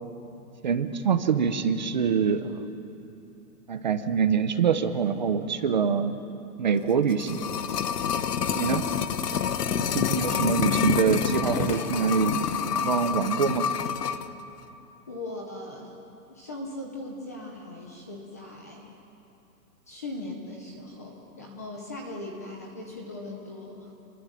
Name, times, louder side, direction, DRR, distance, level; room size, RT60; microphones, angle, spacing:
voice 1, 0.6-2.7 3.7-6.2 6.6-7.4 8.5-8.8 9.8-12.4 12.7-13.7, right 6 dB, 30° right, 10 dB, 0.8 m, -25 dB
sound 1, 6.9-14.3 14.6-14.7, left 7 dB, 80° left, 1.5 m, -28 dB
voice 2, 8.5-8.9 15.1-15.9 16.3-18.9 19.9-23.9, left 2 dB, 10° left, 0 dB, 0.6 m, -39 dB
28.5 x 22.5 x 7.4 m, 2.8 s
hypercardioid pair, 180°, 47 cm